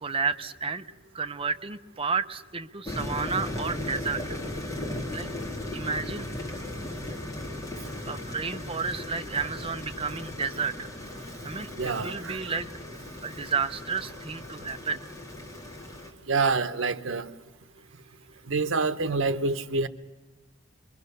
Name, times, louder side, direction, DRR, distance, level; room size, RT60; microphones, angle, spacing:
voice 1, 0.0-0.8 1.1-4.4 5.1-5.3 5.7-6.3 8.1-10.9 11.4-11.7 12.0-12.7 13.0-15.0, right 5 dB, 30° right, 0.8 m, -31 dB
sound 1, 2.9-16.1, left 1 dB, 15° left, 2.9 m, -37 dB
voice 2, 11.8-12.4 16.3-17.3 18.5-19.9, right 4 dB, 80° right, 1.0 m, -27 dB
26.0 x 22.5 x 6.7 m
head